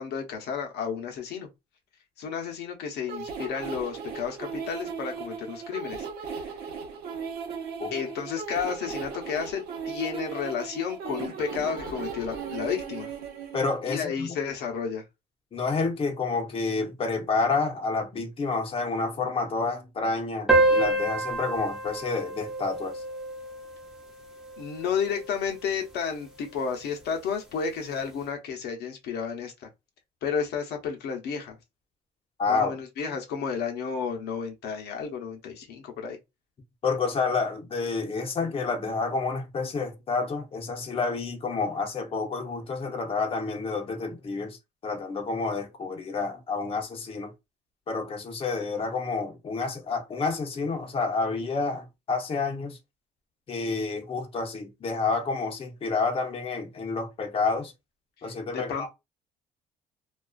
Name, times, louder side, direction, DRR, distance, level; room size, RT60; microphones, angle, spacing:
voice 1, 0.0-1.5 2.2-6.1 7.9-13.1 13.9-15.0 24.6-29.7 30.2-31.6 32.5-36.2 58.5-58.9, left 6 dB, 75° left, 0.7 m, -32 dB
sound 1, 3.1-13.6, right 6 dB, 70° right, 0.8 m, -37 dB
voice 2, 13.5-14.3 15.5-23.0 32.4-32.7 36.8-44.6 44.8-47.3 47.9-52.8 53.5-57.7 58.2-58.9, left 4 dB, 35° left, 0.7 m, -29 dB
sound 2, 20.5-25.5, right 2 dB, 5° right, 0.8 m, -27 dB
2.4 x 2.3 x 2.3 m
cardioid pair, 110°, 17 cm